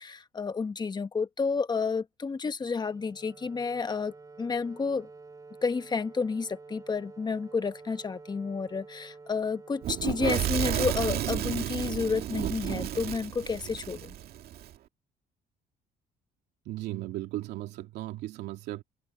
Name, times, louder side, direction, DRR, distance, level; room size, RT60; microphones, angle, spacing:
voice 1, 0.0-5.1 5.6-14.1, left 4 dB, 25° left, 1.2 m, -31 dB
Wind instrument woodwind instrument, 2.8-12.1, right 3 dB, 20° right, 3.9 m, -50 dB
Fire / Explosion, 9.8-14.7, right 12 dB, 65° right, 2.1 m, -32 dB
voice 2, 16.7-18.8, right 16 dB, 85° right, 2.7 m, -36 dB
open air
cardioid pair, 110°, 17 cm